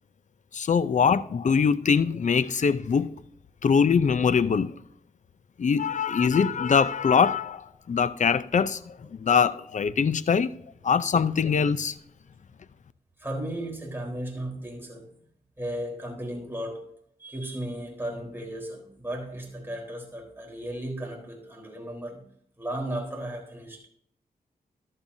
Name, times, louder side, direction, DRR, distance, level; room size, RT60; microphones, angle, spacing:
voice 1, 0.5-3.2 3.6-4.7 5.6-10.5 10.8-12.0, left 6 dB, 50° left, 0.5 m, -23 dB
voice 2, 13.2-15.1 15.6-16.9 17.2-22.2 22.6-23.9, right 1 dB, 15° right, 3.9 m, -35 dB
14.5 x 12.0 x 2.7 m
cardioid pair, 75°, 16 cm